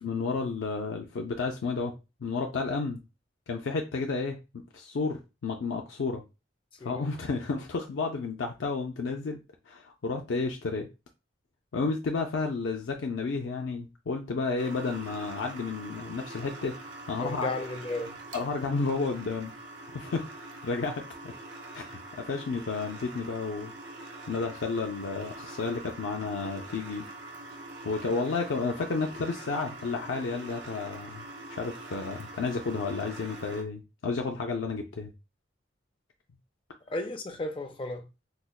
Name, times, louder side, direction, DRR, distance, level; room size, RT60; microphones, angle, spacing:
voice 1, 0.0-3.0 3.5-6.2 6.8-9.4 9.7-10.9 11.7-16.8 17.1-17.5 18.3-19.5 19.9-20.3 20.6-21.3 21.7-23.8 24.3-27.1 27.8-35.1, left 4 dB, 85° left, 0.4 m, -32 dB
sound 1, 14.6-33.6, right 2 dB, 75° right, 0.9 m, -44 dB
voice 2, 17.2-18.2 36.9-38.1, left 2 dB, 30° left, 0.4 m, -34 dB
4.9 x 2.1 x 2.2 m
head